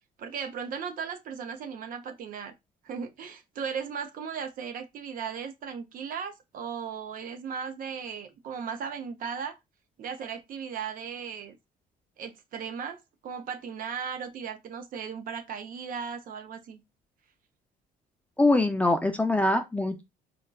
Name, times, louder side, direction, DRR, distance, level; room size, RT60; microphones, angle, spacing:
voice 1, 0.2-2.5 2.8-9.6 10.0-11.6 12.2-16.8, right 6 dB, 55° right, 0.6 m, -37 dB
voice 2, 18.4-20.0, left 2 dB, 10° left, 0.4 m, -23 dB
3.9 x 2.1 x 2.3 m
cardioid pair, 110°, 17 cm